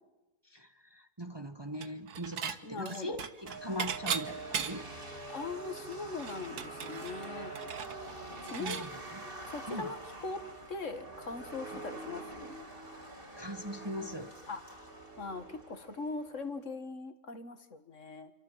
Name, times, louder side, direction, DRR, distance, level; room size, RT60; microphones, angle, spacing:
voice 1, 0.4-4.8 8.5-8.9 9.7-9.9 13.4-14.3, equal, 15° right, 7 dB, 1.5 m, -40 dB
Dishes pots and pans / Chink clink, 1.8-2.6 2.9-5.0 5.4-5.5 5.8-8.9, right 7 dB, 85° right, 1.8 m, -38 dB
voice 2, 2.6-3.2 5.3-7.5 8.4-8.8 9.4-10.4 10.7-12.6 14.5-14.8 15.2-18.3, left 3 dB, 55° left, 9 dB, 2.2 m, -40 dB
sound 1, 3.5-16.5, right 2 dB, 35° right, 4.9 m, -45 dB
28.5 x 25.0 x 7.5 m, 1.1 s
omnidirectional pair, 1.6 m